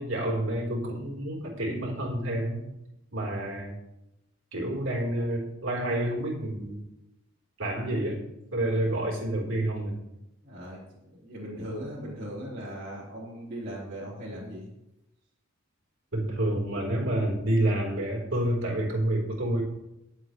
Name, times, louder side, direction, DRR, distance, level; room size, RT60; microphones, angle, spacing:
voice 1, 0.0-2.6 3.1-3.7 4.5-6.8 7.6-8.2 8.5-10.0 16.1-19.6, right 1 dB, 65° right, -1 dB, 4.0 m, -28 dB
voice 2, 10.4-14.7, equal, 45° right, -9 dB, 4.0 m, -39 dB
22.5 x 7.9 x 3.2 m, 0.89 s
head